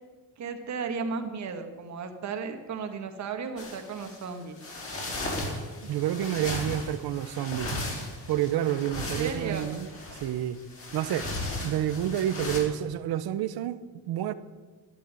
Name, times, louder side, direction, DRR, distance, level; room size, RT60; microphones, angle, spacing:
voice 1, 0.4-4.6 9.0-9.7, right 5 dB, 50° right, 2.0 m, -35 dB
sound 1, 3.6-12.6, left 2 dB, 35° left, 4.5 m, -36 dB
voice 2, 5.8-7.8 8.3-9.9 10.2-10.6 10.9-11.3 11.6-14.3, right 11 dB, 80° right, 1.0 m, -29 dB
12.5 x 11.5 x 9.2 m
cardioid pair, 160°, 37 cm